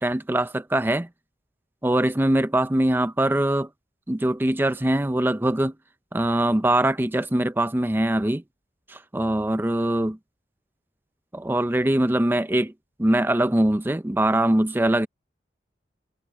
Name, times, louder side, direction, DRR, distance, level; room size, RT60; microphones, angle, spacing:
voice 1, 0.0-1.1 1.8-3.7 4.1-5.7 6.1-8.4 8.9-10.2 11.3-12.7 13.0-15.1, right 1 dB, 10° right, 0.5 m, -22 dB
head